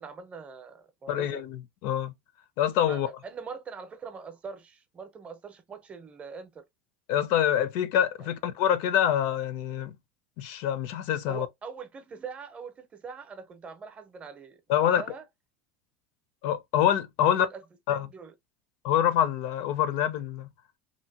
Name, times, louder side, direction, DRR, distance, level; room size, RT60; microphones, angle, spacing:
voice 1, 0.0-1.4 2.8-6.6 8.2-8.3 11.3-15.2 17.2-17.6 17.9-18.3, right 5 dB, 20° right, 0.6 m, -42 dB
voice 2, 1.1-2.1 2.6-3.1 7.1-9.9 10.4-11.5 14.7-15.0 16.4-17.5 17.9-18.1 18.8-20.5, left 10 dB, 60° left, 0.5 m, -26 dB
2.8 x 2.6 x 2.7 m
supercardioid pair, 140°, 6 cm